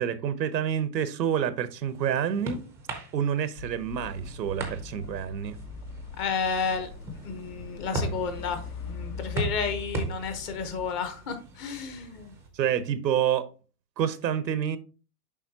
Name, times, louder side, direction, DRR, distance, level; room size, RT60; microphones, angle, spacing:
voice 1, 0.0-2.6 3.1-5.6 12.5-13.5 14.0-14.8, right 9 dB, 85° right, 1.0 m, -28 dB
sound 1, 1.5-12.5, right 2 dB, 5° right, 0.5 m, -39 dB
sound 2, 3.6-10.8, left 4 dB, 60° left, 1.2 m, -41 dB
voice 2, 6.2-6.9 7.2-12.3, left 5 dB, 25° left, 0.8 m, -31 dB
7.2 x 5.2 x 2.8 m
hypercardioid pair, 140°, 50 cm